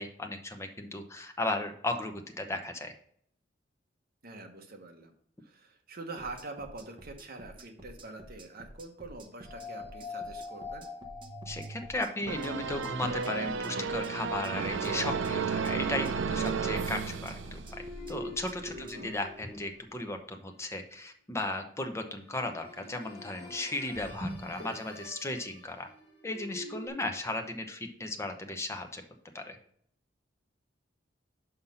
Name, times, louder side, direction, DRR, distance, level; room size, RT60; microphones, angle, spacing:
voice 1, 0.0-2.9 11.5-17.6 18.1-25.9 26.2-29.0 29.3-29.6, left 2 dB, 15° left, 4 dB, 0.8 m, -36 dB
voice 2, 4.2-5.1 5.4-10.9 18.8-19.1, right 3 dB, 55° right, 3 dB, 1.1 m, -45 dB
sound 1, 6.2-19.0, right 1 dB, 25° right, 0.8 m, -51 dB
sound 2, 9.5-20.6 22.1-26.9, left 1 dB, 30° left, 1.9 m, -45 dB
sound 3, 12.3-17.9, right 5 dB, 70° right, 0.5 m, -33 dB
5.7 x 5.2 x 5.7 m, 0.65 s
head